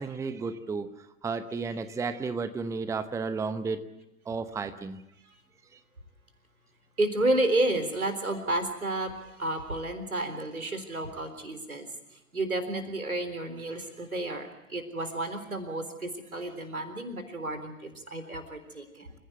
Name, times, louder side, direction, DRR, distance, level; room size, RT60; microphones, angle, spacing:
voice 1, 0.0-3.8 4.3-5.0 5.7-5.8, right 4 dB, 5° right, 11 dB, 0.9 m, -33 dB
voice 2, 7.0-9.1 9.4-11.9 12.3-19.1, right 2 dB, 80° right, 9 dB, 3.9 m, -31 dB
27.5 x 16.0 x 8.2 m, 0.95 s
figure-of-eight pair, 100°, 42 cm